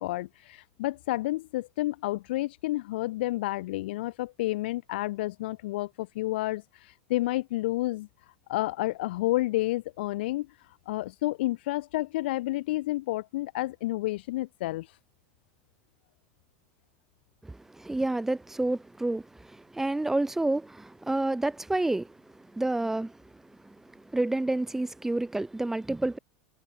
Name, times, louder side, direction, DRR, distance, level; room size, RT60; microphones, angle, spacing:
voice 1, 0.0-6.6 7.1-8.1 8.5-10.5 10.9-14.9, left 18 dB, 75° left, 3.9 m, -30 dB
voice 2, 17.4-23.2 23.6-26.2, right 2 dB, 5° right, 4.0 m, -29 dB
supercardioid pair, 125°, 6 cm